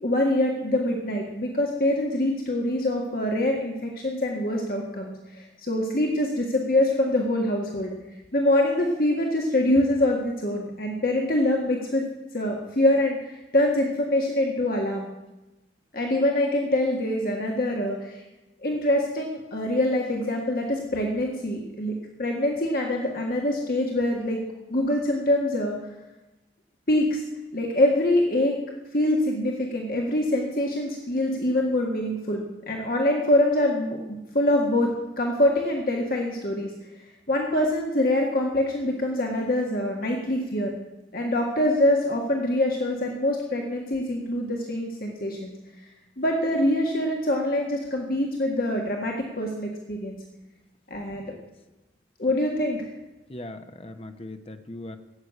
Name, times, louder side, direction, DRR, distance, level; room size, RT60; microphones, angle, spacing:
voice 1, 0.0-7.9 8.3-12.0 12.3-15.1 15.9-18.2 18.6-25.8 26.9-27.2 27.5-28.6 28.9-34.0 34.3-36.7 37.3-40.7 41.1-45.5 46.2-50.2 50.9-51.3 52.2-52.8, left 1 dB, 50° left, 0 dB, 1.7 m, -24 dB
voice 2, 53.3-55.0, left 1 dB, 30° left, 7 dB, 1.0 m, -39 dB
14.5 x 8.2 x 9.5 m, 1.0 s
head